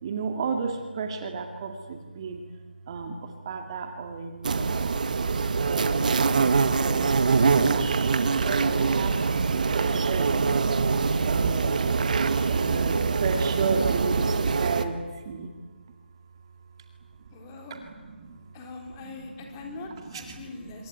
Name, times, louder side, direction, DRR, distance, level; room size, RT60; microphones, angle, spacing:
voice 1, 0.0-2.4 2.9-5.0 5.7-7.2 7.7-8.1 8.4-9.2 9.5-12.0 12.2-15.5 17.2-17.3 17.7-18.4 19.0-19.3 19.6-20.9, right 5 dB, 25° right, 5 dB, 2.2 m, -33 dB
sound 1, 4.4-14.8, right 4 dB, 45° right, 1.8 m, -24 dB
voice 2, 17.3-17.8 18.5-20.9, left 3 dB, 20° left, 2 dB, 4.2 m, -42 dB
26.5 x 23.0 x 9.4 m, 1.4 s
figure-of-eight pair, 165°, 6 cm